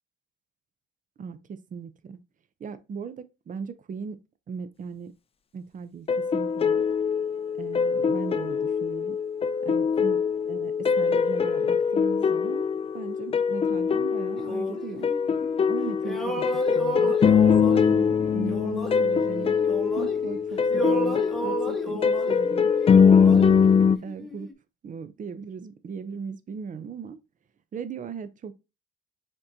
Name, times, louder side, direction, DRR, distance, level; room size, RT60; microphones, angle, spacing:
voice 1, 1.2-2.2 2.6-4.2 4.5-5.1 5.5-6.8 7.6-9.2 9.6-10.2 10.5-12.6 12.9-15.1 15.7-16.4 16.7-19.5 19.9-22.7 23.3-23.6 24.0-24.5 24.8-27.2 27.7-28.5, right 6 dB, 40° right, 0.6 m, -38 dB
sound 1, 6.1-24.0, left 6 dB, 30° left, 0.4 m, -23 dB
sound 2, 14.4-15.7 16.0-20.4 20.7-24.5, right 2 dB, ahead, 1.0 m, -34 dB
5.2 x 3.7 x 2.7 m
cardioid pair, 90°, 20 cm